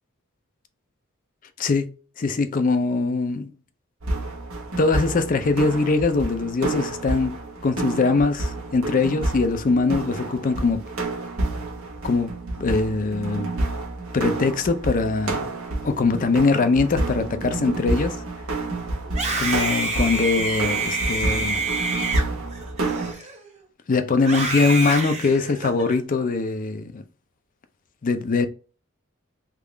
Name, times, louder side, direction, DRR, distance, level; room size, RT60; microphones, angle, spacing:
voice 1, 1.6-1.9 2.2-3.5 4.8-7.3 7.6-10.8 12.0-13.5 14.1-15.4 15.8-18.2 19.4-21.6 23.9-27.0 28.0-28.5, left 3 dB, 40° left, 0.4 m, -22 dB
sound 1, 4.0-23.1, right 2 dB, 85° right, 1.0 m, -29 dB
Screaming, 19.0-23.6 24.2-25.9, right 3 dB, 35° right, 1.0 m, -27 dB
3.6 x 2.4 x 3.2 m
head